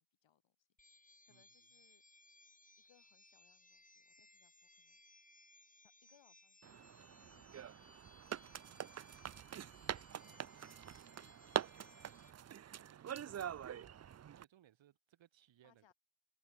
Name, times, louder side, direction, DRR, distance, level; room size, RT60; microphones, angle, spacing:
voice 1, 0.0-2.3 2.8-5.0 5.8-9.0 11.9-12.0 15.6-15.9, left 10 dB, 70° left, 6.0 m, -74 dB
sound 1, 0.8-12.3, left 2 dB, 15° left, 4.3 m, -65 dB
sound 2, 6.6-14.4, right 9 dB, 35° right, 0.6 m, -45 dB
voice 2, 10.1-10.8 11.6-11.9 12.8-15.9, right 11 dB, 75° right, 4.2 m, -67 dB
hypercardioid pair, 40°, 46 cm